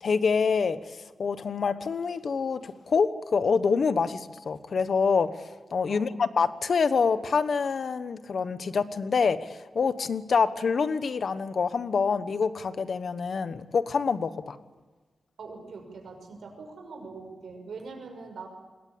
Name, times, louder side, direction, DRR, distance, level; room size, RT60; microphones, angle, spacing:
voice 1, 0.0-5.3 5.7-14.6, left 5 dB, 60° left, 12 dB, 1.2 m, -26 dB
voice 2, 15.4-18.5, right 4 dB, 75° right, 3 dB, 6.2 m, -42 dB
26.0 x 21.5 x 8.7 m, 1.3 s
wide cardioid pair, 155°, 0 cm